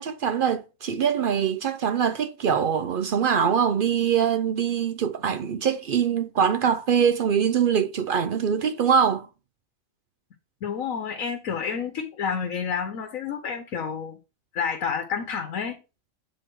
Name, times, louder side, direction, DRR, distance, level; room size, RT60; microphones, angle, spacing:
voice 1, 0.0-9.3, right 7 dB, 60° right, 0.6 m, -23 dB
voice 2, 10.6-14.2 14.5-15.8, left 6 dB, 90° left, 1.3 m, -29 dB
7.8 x 4.1 x 4.5 m
omnidirectional pair, 1.4 m